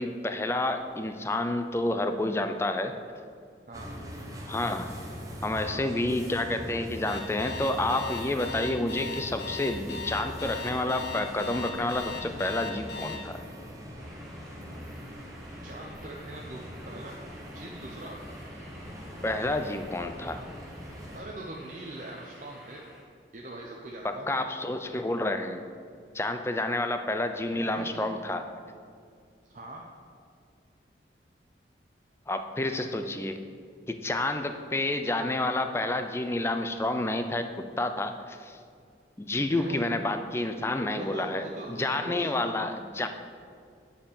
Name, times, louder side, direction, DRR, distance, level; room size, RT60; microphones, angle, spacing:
voice 1, 0.0-2.9 4.5-4.9 5.4-13.4 19.2-20.4 24.0-25.6 26.1-28.4 32.3-33.4 33.9-38.6 39.2-43.1, left 2 dB, 15° left, 7 dB, 0.4 m, -29 dB
sound 1, 3.7-21.2, equal, 20° right, 0.9 m, -42 dB
Alarm, 7.0-13.2, left 5 dB, 65° left, 1.0 m, -38 dB
sound 2, 14.0-23.0, equal, ahead, 1.2 m, -52 dB
voice 2, 15.6-17.1 17.5-18.2 21.1-22.9 23.3-24.3 27.6-28.1 29.5-29.8 39.5-39.8 40.9-42.3, right 1 dB, 45° right, -2 dB, 0.7 m, -42 dB
7.9 x 4.4 x 7.1 m, 2.2 s
head